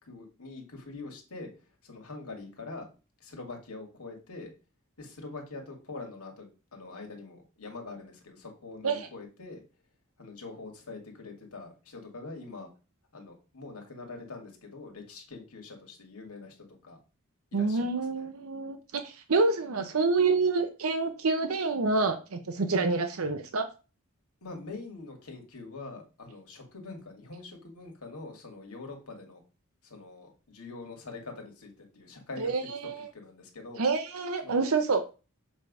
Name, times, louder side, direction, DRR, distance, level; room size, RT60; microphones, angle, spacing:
voice 1, 0.0-1.5 1.8-2.9 3.2-4.5 5.0-9.6 10.2-12.7 13.1-17.0 17.5-18.3 24.4-29.4 29.8-32.5 32.8-33.8 34.4-34.6, left 3 dB, 90° left, 2 dB, 2.1 m, -44 dB
voice 2, 17.5-23.6 32.4-33.1 33.8-35.0, right 3 dB, 70° right, 7 dB, 0.7 m, -27 dB
7.2 x 3.4 x 5.4 m, 0.32 s
head